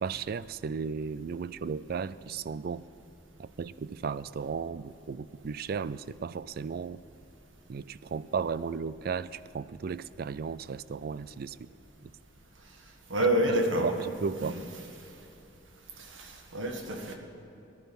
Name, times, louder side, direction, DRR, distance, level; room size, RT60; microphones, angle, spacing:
voice 1, 0.0-2.8 3.4-7.0 7.7-11.7 13.5-13.9 14.2-14.6, right 5 dB, 50° right, 17 dB, 0.3 m, -35 dB
voice 2, 13.1-14.0 14.4-14.7 16.0-17.1, right 1 dB, 80° right, 3 dB, 1.6 m, -28 dB
18.5 x 11.0 x 5.4 m, 2.8 s
head